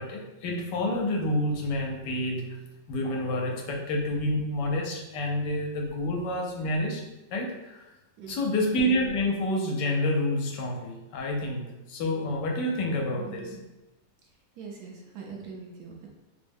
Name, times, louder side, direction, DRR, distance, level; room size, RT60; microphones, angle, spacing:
voice 1, 0.0-2.4 2.9-7.0 7.3-7.8 8.3-13.5, left 1 dB, 80° left, 0 dB, 1.3 m, -28 dB
voice 2, 8.2-8.5 13.1-13.6 14.6-16.1, right 5 dB, 70° right, -1 dB, 1.0 m, -42 dB
3.4 x 2.1 x 3.4 m, 1.0 s
omnidirectional pair, 1.9 m